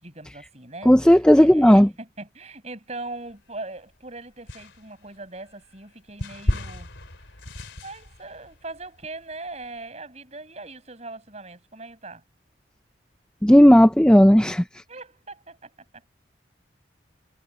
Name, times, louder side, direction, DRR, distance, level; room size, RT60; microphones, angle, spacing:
voice 1, 0.0-6.9 7.8-12.2 14.9-15.7, right 2 dB, 35° right, 7.4 m, -40 dB
voice 2, 0.9-1.9 13.4-14.6, equal, 5° left, 0.5 m, -13 dB
sound 1, 3.1-3.9 4.5-9.8, left 1 dB, 85° left, 3.5 m, -33 dB
head